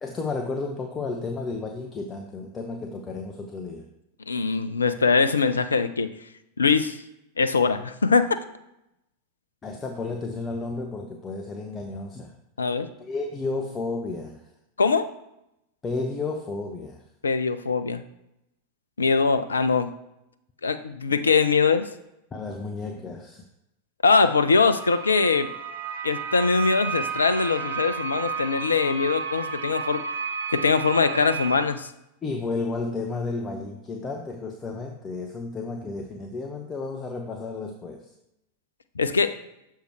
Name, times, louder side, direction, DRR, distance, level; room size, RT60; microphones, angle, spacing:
voice 1, 0.0-3.9 9.6-12.3 13.0-14.4 15.8-17.0 22.3-23.5 32.2-38.1, left 3 dB, 20° left, 2 dB, 0.7 m, -32 dB
voice 2, 4.3-6.1 6.6-7.0 7.4-8.4 12.6-12.9 14.8-15.1 17.2-18.0 19.0-19.9 20.6-21.9 24.0-25.5 26.0-30.0 30.5-31.9 39.0-39.4, left 4 dB, 75° left, 11 dB, 0.5 m, -22 dB
sound 1, 24.7-31.6, right 5 dB, 60° right, 0.8 m, -32 dB
6.8 x 4.5 x 4.6 m, 0.86 s
figure-of-eight pair, 90°, 0 cm